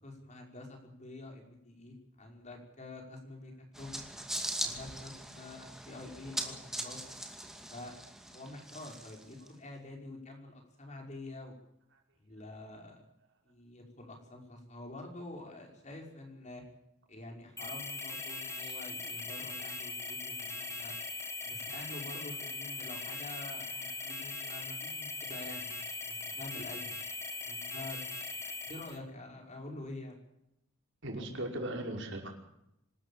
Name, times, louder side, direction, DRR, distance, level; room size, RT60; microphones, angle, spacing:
voice 1, 0.0-4.0 4.6-7.0 7.7-11.6 12.2-13.0 13.4-16.6 17.1-20.9 21.4-27.0 27.4-30.2, left 2 dB, 35° left, 2 dB, 5.6 m, -47 dB
sound 1, 3.7-9.5, right 1 dB, ahead, 2.4 m, -41 dB
sound 2, 17.6-29.0, left 3 dB, 15° left, 2.2 m, -40 dB
voice 2, 31.0-32.3, right 1 dB, 60° right, 2 dB, 5.5 m, -38 dB
26.5 x 13.0 x 8.7 m, 0.81 s
head